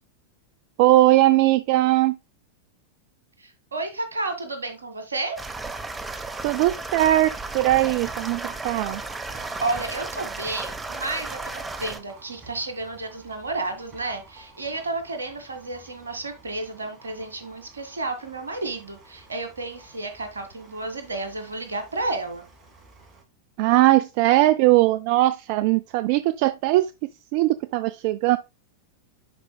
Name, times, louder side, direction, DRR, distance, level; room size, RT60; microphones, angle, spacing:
voice 1, 0.8-2.2 6.4-9.0 23.6-26.9 27.3-28.4, right 16 dB, 45° right, 0.4 m, -20 dB
voice 2, 3.4-5.4 9.6-22.5, right 2 dB, 75° right, 1.9 m, -31 dB
sound 1, 5.4-12.0, right 3 dB, 10° right, 0.9 m, -34 dB
Livestock farm animals working animals, 8.0-23.2, right 3 dB, 30° right, 2.5 m, -51 dB
10.5 x 5.1 x 2.2 m
figure-of-eight pair, 90°, 0 cm